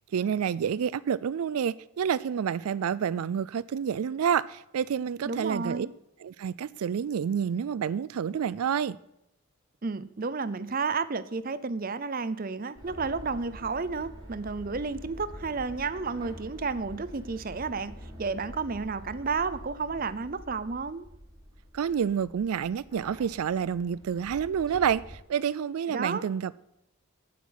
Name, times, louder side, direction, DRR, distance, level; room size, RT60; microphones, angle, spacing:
voice 1, 0.1-5.9 6.2-9.0 21.7-26.6, right 8 dB, 85° right, 0.4 m, -29 dB
voice 2, 5.3-5.9 9.8-17.9 18.2-21.1 25.9-26.2, right 4 dB, 40° right, 0.6 m, -32 dB
sound 1, 12.7-25.2, equal, 20° right, 3.7 m, -46 dB
9.5 x 8.2 x 9.4 m
head